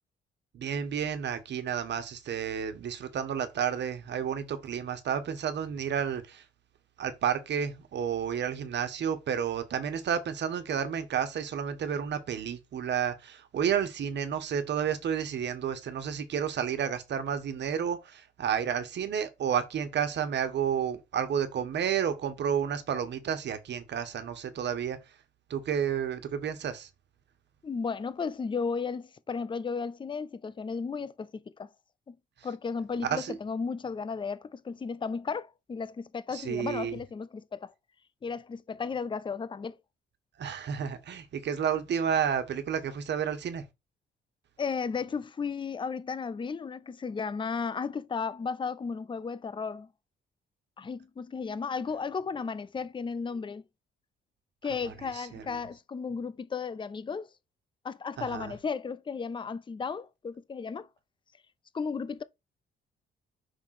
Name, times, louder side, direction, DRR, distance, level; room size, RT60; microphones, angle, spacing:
voice 1, 0.5-6.4 7.0-25.0 25.5-26.9 33.0-33.3 36.3-37.0 40.4-43.6 54.8-55.4 58.2-58.5, right 8 dB, 60° right, 1.5 m, -31 dB
voice 2, 27.6-31.7 32.1-32.2 32.4-37.7 38.2-39.8 44.6-49.9 50.8-53.6 54.6-57.3 57.8-60.9 61.7-62.2, left 5 dB, 25° left, 0.6 m, -34 dB
5.9 x 3.7 x 5.9 m
cardioid pair, 90°, 20 cm